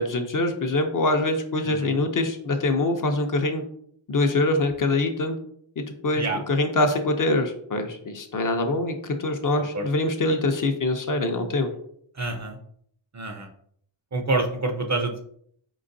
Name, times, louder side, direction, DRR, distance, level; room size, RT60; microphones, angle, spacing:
voice 1, 0.0-3.6 4.1-5.4 5.8-11.7, left 2 dB, 40° left, 5 dB, 0.6 m, -24 dB
voice 2, 12.1-12.6 13.1-13.5 14.1-15.2, right 2 dB, 35° right, 5 dB, 0.5 m, -27 dB
4.3 x 3.9 x 2.6 m, 0.66 s
wide cardioid pair, 125°, 50 cm